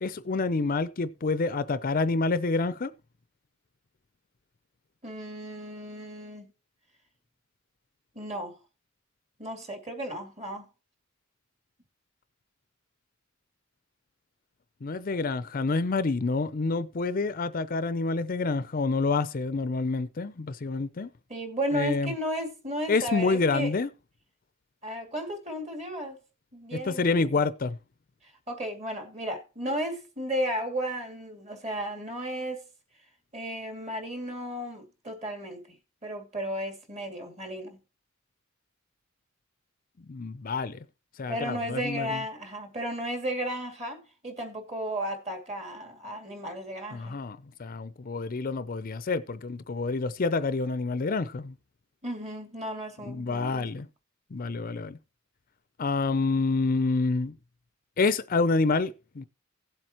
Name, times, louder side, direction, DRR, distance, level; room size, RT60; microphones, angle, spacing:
voice 1, 0.0-2.9 14.8-21.1 21.7-22.1 22.9-23.9 26.8-27.8 40.1-40.8 41.2-42.2 46.9-51.5 53.1-53.9 54.3-55.0 55.8-57.3 58.0-59.3, left 3 dB, 45° left, 0.5 m, -28 dB
voice 2, 5.0-6.5 8.1-8.6 9.4-10.7 21.3-23.7 24.8-26.2 26.5-27.4 28.5-32.6 33.3-35.6 36.0-37.8 41.3-47.2 52.0-53.7, equal, 35° right, 2.4 m, -34 dB
17.0 x 7.8 x 3.0 m
head